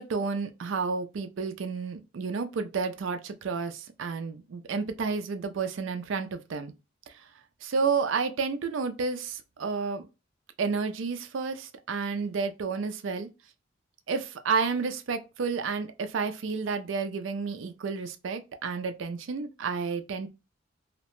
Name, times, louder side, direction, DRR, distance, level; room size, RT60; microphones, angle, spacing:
voice 1, 0.0-6.7 7.1-7.3 7.6-10.1 10.6-13.3 14.1-20.3, right 5 dB, 70° right, 0.4 m, -31 dB
2.8 x 2.1 x 3.0 m
head